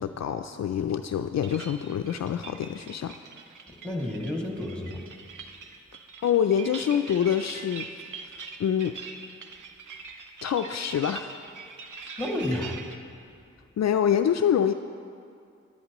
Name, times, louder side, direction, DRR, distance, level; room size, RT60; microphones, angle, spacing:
voice 1, 0.0-3.2 6.2-7.9 8.6-8.9 10.4-11.3 13.8-14.7, left 9 dB, 60° left, 7 dB, 0.4 m, -26 dB
sound 1, 1.4-13.0, right 5 dB, 85° right, 0.7 m, -43 dB
voice 2, 3.7-5.1 12.2-12.8, left 1 dB, 5° left, 0 dB, 2.2 m, -31 dB
15.0 x 11.0 x 3.0 m, 2.4 s
cardioid pair, 40°, 30 cm